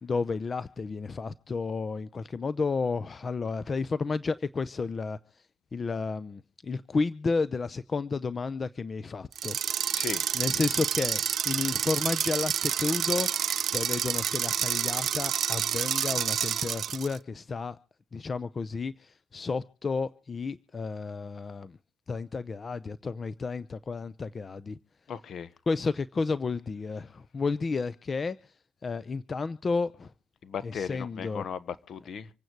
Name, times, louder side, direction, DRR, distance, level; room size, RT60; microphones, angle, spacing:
voice 1, 0.0-5.2 5.7-9.9 10.3-13.3 13.7-17.8 18.1-21.8 22.1-24.8 25.7-28.5 28.8-30.1 30.6-31.4, left 4 dB, 35° left, 0.7 m, -32 dB
sound 1, 9.3-17.2, right 9 dB, 60° right, 0.8 m, -29 dB
voice 2, 9.9-10.2 25.1-25.5 30.4-32.3, left 7 dB, 60° left, 1.3 m, -36 dB
26.0 x 9.2 x 4.7 m
cardioid pair, 90°, 0 cm